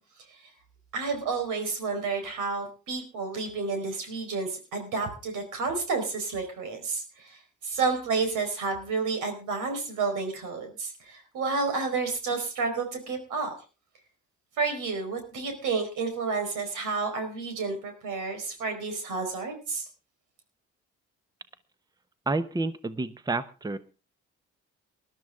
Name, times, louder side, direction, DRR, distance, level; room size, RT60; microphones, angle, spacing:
voice 1, 0.9-13.5 14.6-19.9, right 4 dB, 85° right, 5 dB, 4.7 m, -30 dB
voice 2, 22.3-23.8, right 3 dB, 15° right, 13 dB, 0.9 m, -29 dB
19.5 x 12.0 x 3.6 m, 0.32 s
cardioid pair, 90°, 30 cm